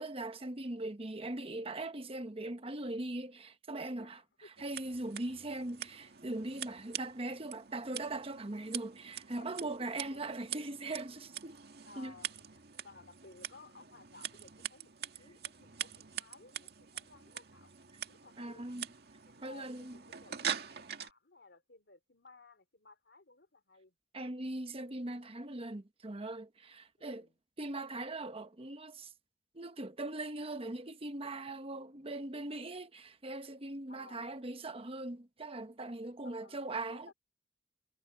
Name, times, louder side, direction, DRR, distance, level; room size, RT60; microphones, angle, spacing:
voice 1, 0.0-4.2 4.6-11.6 12.0-12.1 18.4-18.8 19.4-20.0 24.1-27.3 27.6-29.1 29.5-37.1, right 2 dB, 35° right, 1.0 m, -40 dB
voice 2, 4.0-4.6 9.4-10.2 11.8-14.9 15.2-17.7 18.1-18.7 19.2-24.0 27.0-27.3 33.9-34.4 36.2-37.1, left 3 dB, 70° left, 3.5 m, -58 dB
Scissors, 4.6-21.1, right 9 dB, 60° right, 2.1 m, -44 dB
head